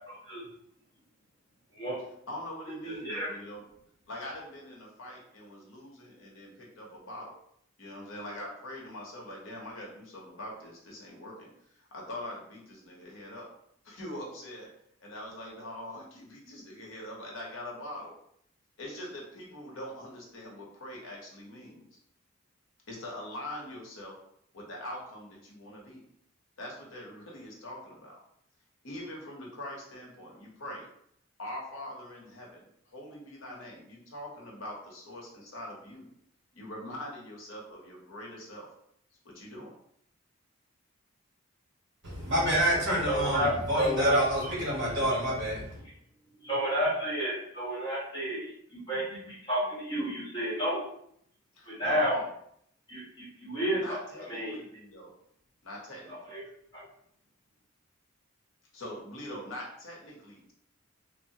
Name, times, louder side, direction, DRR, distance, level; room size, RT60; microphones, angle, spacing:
voice 1, 0.0-0.4 1.7-2.0 2.9-3.3 43.1-43.5 46.4-50.8 51.7-52.2 52.9-53.8 54.3-54.6 56.3-56.4, equal, 20° left, -7 dB, 1.0 m, -31 dB
voice 2, 2.3-3.7 4.1-7.3 7.8-13.5 13.8-14.7 15.0-18.1 18.8-21.9 22.9-24.2 24.5-26.0 26.6-28.2 28.8-30.9 31.4-36.1 36.5-38.7 39.2-39.7 51.5-52.3 53.8-55.1 55.6-56.2 58.7-60.5, left 1 dB, 70° left, -2 dB, 0.7 m, -43 dB
voice 3, 42.0-45.8, equal, 55° right, -5 dB, 1.2 m, -27 dB
3.1 x 2.0 x 2.7 m, 0.70 s
head